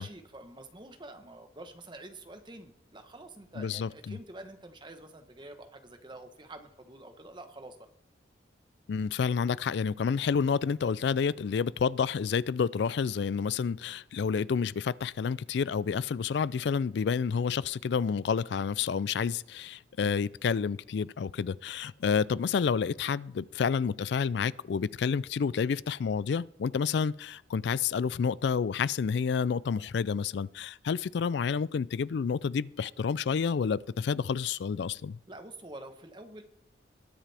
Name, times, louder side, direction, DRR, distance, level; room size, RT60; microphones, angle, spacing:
voice 1, 0.0-7.9 35.3-36.4, right 2 dB, 25° right, 1.1 m, -47 dB
voice 2, 3.6-4.2 8.9-35.2, left 6 dB, 65° left, 0.3 m, -29 dB
20.5 x 7.4 x 3.4 m
head